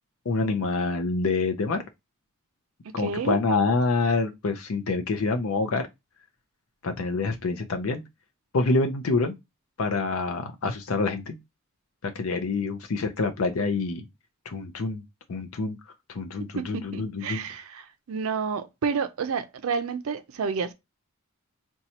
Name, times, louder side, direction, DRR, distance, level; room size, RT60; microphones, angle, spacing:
voice 1, 0.3-1.8 2.9-5.9 6.8-8.0 8.5-9.3 9.8-11.3 12.0-14.0 14.5-15.0 15.3-15.8 16.1-17.4, left 3 dB, 70° left, 0.5 m, -26 dB
voice 2, 2.9-3.4 16.5-20.7, right 5 dB, 70° right, 0.4 m, -30 dB
4.0 x 2.3 x 2.7 m
head